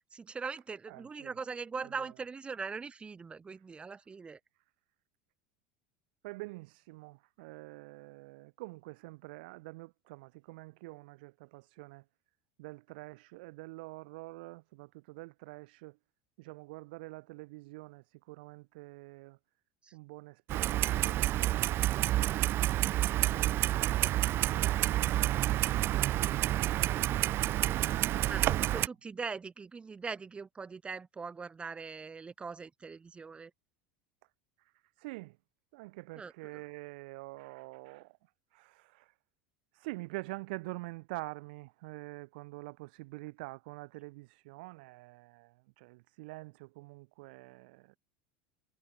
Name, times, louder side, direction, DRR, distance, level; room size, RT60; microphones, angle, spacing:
voice 1, 0.0-4.4 19.8-19.9 28.3-33.5 36.2-36.3, right 5 dB, 20° right, 6.0 m, -41 dB
voice 2, 0.9-1.3 1.8-2.1 6.2-12.0 12.6-16.0 16.4-19.4 19.9-24.0 28.1-28.7 34.6-34.7 35.0-35.4 35.7-38.2 38.5-39.1 39.7-48.0, right 24 dB, 75° right, 2.0 m, -47 dB
Clock, 20.5-28.9, right 14 dB, 45° right, 0.9 m, -29 dB
supercardioid pair, 110°, 5 cm